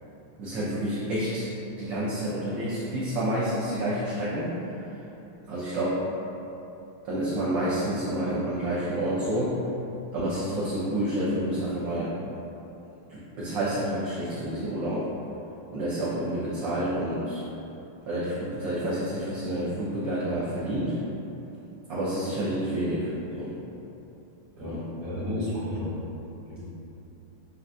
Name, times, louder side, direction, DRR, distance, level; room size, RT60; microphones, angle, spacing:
voice 1, 0.4-1.5 1.8-5.0 5.5-6.0 7.0-9.6 10.1-12.1 13.1-15.1 15.7-17.4 18.1-20.9 21.9-23.5 24.6-24.8, right 1 dB, 70° right, -10 dB, 1.3 m, -29 dB
voice 2, 24.6-25.9 26.5-26.6, left 1 dB, 45° right, -9 dB, 1.4 m, -32 dB
6.5 x 2.3 x 2.4 m, 3.0 s
omnidirectional pair, 2.3 m